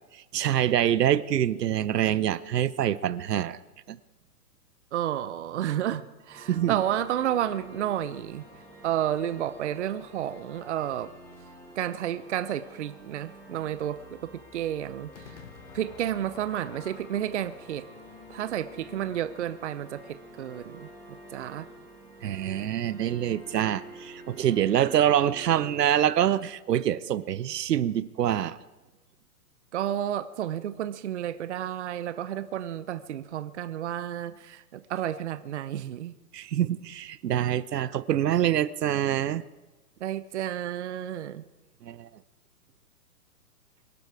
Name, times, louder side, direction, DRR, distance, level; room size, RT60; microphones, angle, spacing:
voice 1, 0.3-3.6 3.9-4.0 6.5-6.8 22.2-28.6 36.3-39.4 41.8-42.1, right 11 dB, 75° right, 18 dB, 0.9 m, -25 dB
voice 2, 4.9-8.5 8.8-11.1 11.8-15.4 15.7-17.9 18.3-21.7 29.7-36.1 40.0-41.4, right 11 dB, 45° right, 13 dB, 0.7 m, -31 dB
sound 1, 6.3-25.9, equal, 5° left, 3.4 m, -49 dB
Crowd / Fireworks, 15.1-20.4, left 7 dB, 45° left, 1.7 m, -51 dB
23.0 x 12.5 x 4.8 m, 1.2 s
hypercardioid pair, 165°, 49 cm